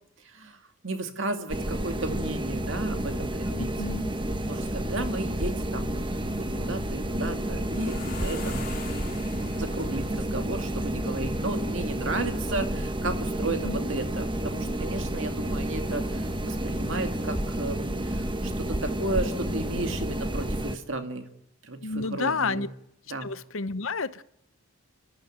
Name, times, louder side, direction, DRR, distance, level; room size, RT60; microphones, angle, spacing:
voice 1, 0.2-0.6 0.8-3.9 4.4-8.7 9.6-21.3 21.6-22.7 23.1-23.3, right 2 dB, 55° right, 6 dB, 2.4 m, -34 dB
sound 1, 1.5-20.8, right 1 dB, 20° right, 1.2 m, -30 dB
sound 2, 3.4-17.6, left 2 dB, 40° left, 2.5 m, -46 dB
voice 2, 3.5-4.1 13.6-13.8 21.8-22.7 23.2-24.2, left 4 dB, 65° left, 14 dB, 0.9 m, -30 dB
Guitar, 6.5-10.8, left 3 dB, 5° right, 7.1 m, -50 dB
28.5 x 13.5 x 8.8 m, 0.83 s
head